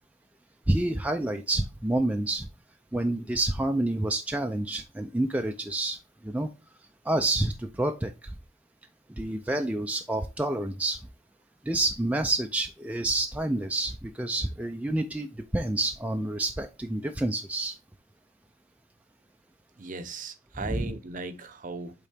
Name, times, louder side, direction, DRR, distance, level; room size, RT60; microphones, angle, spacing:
voice 1, 0.7-2.5 2.9-6.0 6.2-6.5 7.1-8.3 9.2-11.0 11.7-17.7 20.6-20.9, right 2 dB, 5° right, 0.4 m, -28 dB
voice 2, 19.8-22.1, right 3 dB, 40° right, 0.6 m, -37 dB
8.3 x 3.8 x 3.4 m
head